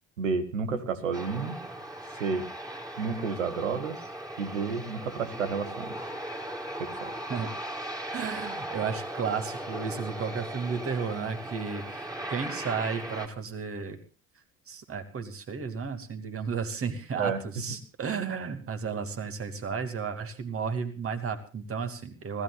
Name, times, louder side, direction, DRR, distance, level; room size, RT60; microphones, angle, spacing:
voice 1, 0.2-1.6 2.2-2.5 3.0-4.0 4.4-5.9 6.8-7.1 17.1-17.4, right 5 dB, 75° right, 10 dB, 1.7 m, -30 dB
Aircraft, 1.1-13.3, right 1 dB, 10° right, 3.1 m, -38 dB
voice 2, 8.1-14.0 14.7-22.4, right 6 dB, 35° right, 7 dB, 2.7 m, -33 dB
26.0 x 16.0 x 2.5 m, 0.36 s
figure-of-eight pair, 55°, 38 cm